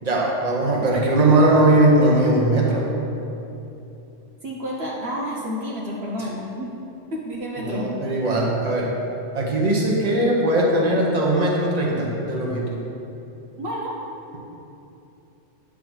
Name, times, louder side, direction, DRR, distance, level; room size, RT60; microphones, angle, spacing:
voice 1, 0.0-3.0 6.2-6.3 7.6-8.9 9.3-12.8, right 1 dB, 35° right, -3 dB, 1.2 m, -19 dB
voice 2, 4.4-6.7 7.1-8.3 13.6-13.9, equal, 60° right, -4 dB, 1.1 m, -30 dB
10.0 x 3.7 x 6.2 m, 2.9 s
omnidirectional pair, 1.3 m